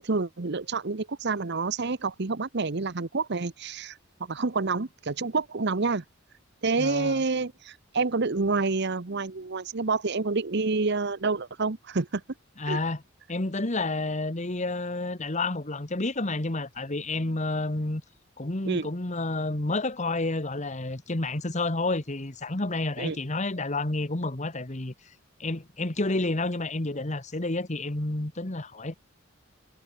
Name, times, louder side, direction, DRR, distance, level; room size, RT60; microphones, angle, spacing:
voice 1, 0.0-6.0 6.6-12.2 12.7-12.8 18.7-18.9 23.0-23.2, right 3 dB, 55° right, 0.9 m, -28 dB
voice 2, 6.8-7.2 12.6-13.0 13.3-18.0 18.4-24.9 25.4-28.9, left 2 dB, 35° left, 1.5 m, -30 dB
head